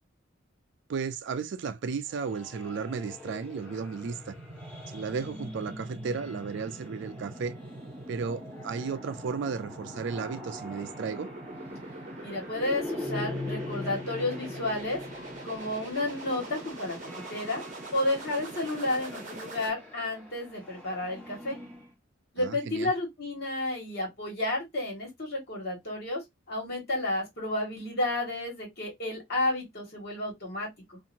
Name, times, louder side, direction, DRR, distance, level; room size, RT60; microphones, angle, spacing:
voice 1, 0.9-4.3 4.9-7.6 8.1-11.3 22.4-22.9, right 5 dB, 60° right, 0.4 m, -34 dB
sound 1, 2.1-21.9, left 2 dB, 10° left, 1.1 m, -43 dB
sound 2, 3.2-19.7, right 2 dB, 40° right, 0.8 m, -44 dB
voice 2, 12.2-15.0 15.4-17.6 17.9-21.6 22.3-26.2 26.5-31.0, left 2 dB, 50° left, 1.7 m, -31 dB
2.8 x 2.5 x 2.6 m
head